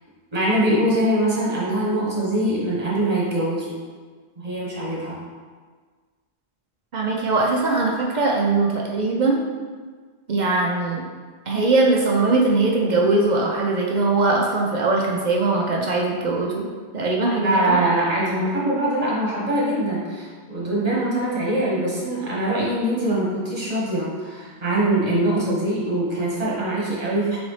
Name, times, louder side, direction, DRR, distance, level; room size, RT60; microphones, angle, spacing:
voice 1, 0.3-3.7 4.4-5.2 17.4-27.4, right 1 dB, 35° right, -7 dB, 1.3 m, -23 dB
voice 2, 6.9-9.4 10.3-11.0 11.5-17.8, right 3 dB, 55° right, -1 dB, 0.6 m, -21 dB
4.0 x 4.0 x 3.2 m, 1.5 s
omnidirectional pair, 1.1 m